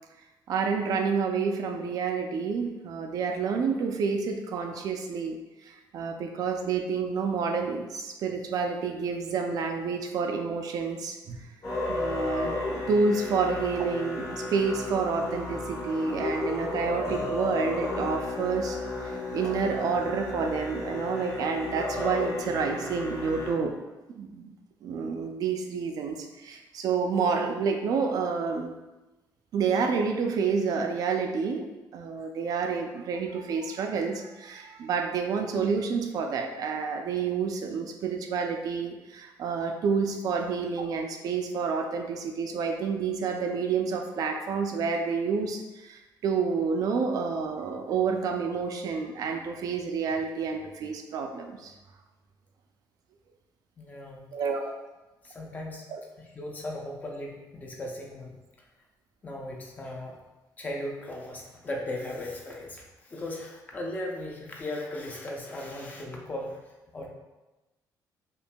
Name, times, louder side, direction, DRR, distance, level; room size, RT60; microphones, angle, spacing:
voice 1, 0.5-11.5 11.9-12.5 12.9-23.8 24.1-24.5 24.8-28.7 29.5-51.7 54.3-54.6, right 5 dB, 55° right, 4 dB, 0.4 m, -29 dB
Musical instrument, 11.6-23.5, left 2 dB, 40° left, 1.0 m, -33 dB
voice 2, 53.8-54.2 55.2-55.9 56.2-58.3 59.2-60.1 60.6-66.6 66.9-67.1, left 1 dB, 20° left, -1 dB, 0.5 m, -37 dB
5.3 x 2.5 x 2.2 m, 1.1 s
cardioid pair, 175°, 8 cm